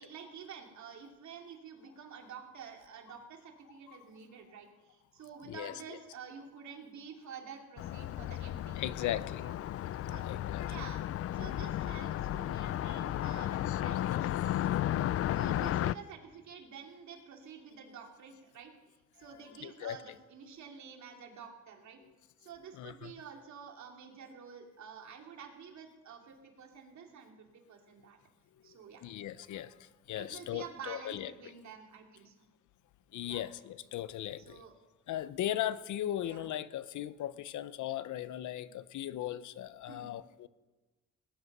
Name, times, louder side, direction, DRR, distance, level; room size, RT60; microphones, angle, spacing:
voice 1, 0.0-8.8 10.1-10.2 10.7-11.0 11.3-14.7 15.3-18.7 19.2-22.0 22.4-28.2 28.6-29.1 30.2-32.3 33.2-33.4 34.4-34.7 36.2-36.5 39.9-40.1, right 6 dB, 65° right, 2 dB, 2.9 m, -49 dB
Car passing by, 7.8-15.9, left 13 dB, 50° left, 0.4 m, -34 dB
voice 2, 8.7-9.6 9.9-10.8 12.6-14.2 19.2-20.0 22.0-22.1 22.7-23.1 28.6-31.3 33.1-34.6 35.1-40.5, left 12 dB, 75° left, 16 dB, 0.8 m, -39 dB
19.0 x 11.0 x 5.5 m, 1.2 s
cardioid pair, 90°, 30 cm